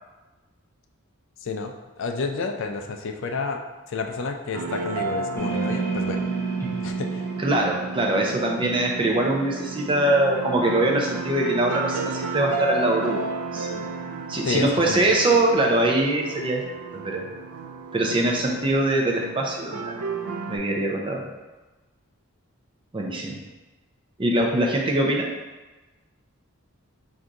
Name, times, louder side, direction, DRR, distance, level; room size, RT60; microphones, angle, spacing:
voice 1, 1.4-3.6 3.9-6.2 6.8-7.3 14.4-15.0 15.3-15.5, left 4 dB, 55° left, 4 dB, 0.4 m, -30 dB
sound 1, 4.5-20.6, right 4 dB, 90° right, 0.4 m, -33 dB
sound 2, 5.3-12.1, right 4 dB, 10° left, 0.8 m, -32 dB
voice 2, 7.4-13.2 13.5-13.9 14.3-16.7 16.9-17.3 17.9-20.0 20.5-21.3 22.9-23.4 24.2-25.3, right 1 dB, 25° right, 0 dB, 0.5 m, -23 dB
3.8 x 2.6 x 4.5 m, 1.2 s
head